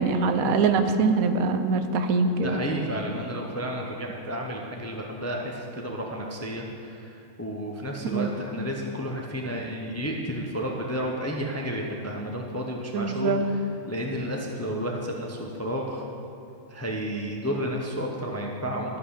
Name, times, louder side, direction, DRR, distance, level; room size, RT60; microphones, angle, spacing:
voice 1, 0.0-2.6 8.1-8.3 12.9-13.4, right 4 dB, 75° right, 8 dB, 1.1 m, -23 dB
voice 2, 2.4-13.6 13.9-16.1 16.7-19.0, equal, 15° left, 0 dB, 0.5 m, -32 dB
12.5 x 5.7 x 6.4 m, 2.7 s
omnidirectional pair, 1.5 m